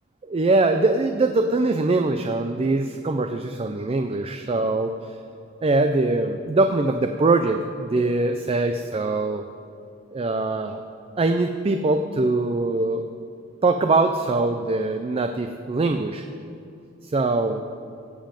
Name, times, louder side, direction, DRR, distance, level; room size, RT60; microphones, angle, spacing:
voice 1, 0.3-4.9 5.6-9.4 10.1-10.8 11.2-13.0 13.6-16.2 17.0-17.6, right 2 dB, 25° right, 7 dB, 0.4 m, -22 dB
16.0 x 7.4 x 5.3 m, 2.6 s
head